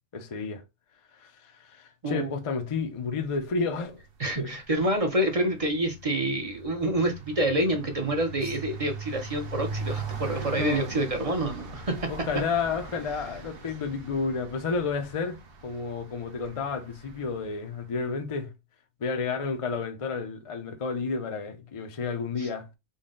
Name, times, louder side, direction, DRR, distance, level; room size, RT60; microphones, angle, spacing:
voice 1, 0.1-0.6 1.1-4.0 4.3-4.5 10.5-11.0 11.9-15.4 15.6-18.5 19.0-22.7, left 4 dB, 40° left, 0.5 m, -31 dB
sound 1, 3.8-4.1 4.4-17.5, right 5 dB, 60° right, 1.0 m, -40 dB
voice 2, 4.2-12.1 22.4-22.5, right 1 dB, 40° right, 0.6 m, -27 dB
3.9 x 2.1 x 3.7 m
omnidirectional pair, 1.1 m